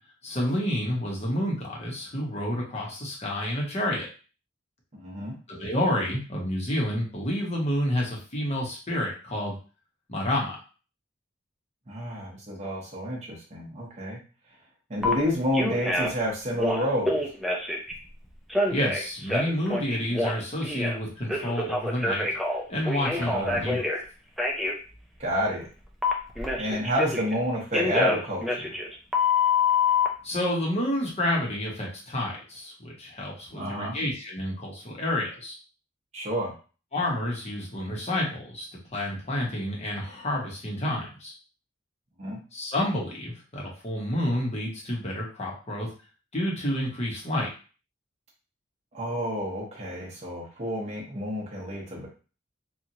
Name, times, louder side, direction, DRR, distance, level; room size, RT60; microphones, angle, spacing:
voice 1, 0.2-4.1 5.5-9.5 10.1-10.6 18.7-22.3 22.7-23.9 30.2-35.5 36.9-38.7 38.9-41.3 42.5-45.9 46.3-47.5, left 1 dB, 35° left, -3 dB, 0.9 m, -29 dB
voice 2, 5.0-5.4 11.9-14.2 14.9-17.1 23.1-23.6 25.2-25.7 26.6-28.6 33.6-34.0 36.1-36.5 42.2-42.4 48.9-52.1, equal, 35° right, -4 dB, 0.8 m, -29 dB
Telephone, 15.0-15.1 15.5-16.2 16.5-17.9 18.5-21.0 21.3-24.0 24.4-24.7 26.0-27.4 27.7-30.1, left 3 dB, ahead, 0.4 m, -26 dB
2.9 x 2.4 x 2.7 m, 0.36 s
head